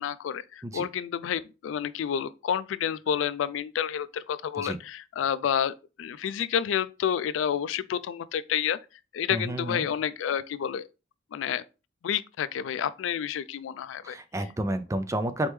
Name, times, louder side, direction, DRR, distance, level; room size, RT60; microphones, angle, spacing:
voice 1, 0.0-8.8 9.1-10.9 11.3-11.6 12.0-14.2, left 8 dB, 80° left, 0.3 m, -29 dB
voice 2, 9.3-9.8 14.0-15.5, right 1 dB, 15° right, 0.3 m, -30 dB
4.2 x 3.4 x 3.1 m
head